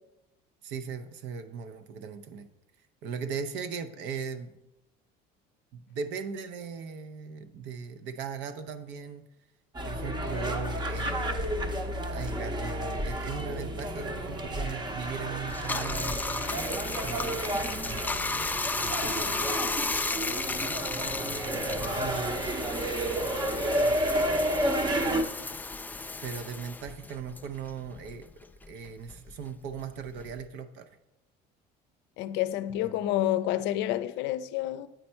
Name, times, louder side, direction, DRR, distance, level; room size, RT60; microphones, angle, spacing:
voice 1, 0.6-2.5 3.0-4.6 5.7-9.3 9.8-11.5 12.1-16.3 17.0-19.4 21.2-22.8 23.8-24.6 26.2-28.3 28.7-31.0 32.8-33.1, right 6 dB, 70° right, 0.6 m, -39 dB
sound 1, 9.7-25.2, right 1 dB, 25° right, 0.7 m, -31 dB
Bathtub (filling or washing), 15.5-28.3 28.6-30.5, left 3 dB, 10° left, 0.3 m, -34 dB
voice 2, 32.2-34.9, left 13 dB, 65° left, 0.5 m, -29 dB
9.1 x 4.3 x 4.4 m
cardioid pair, 115°, 19 cm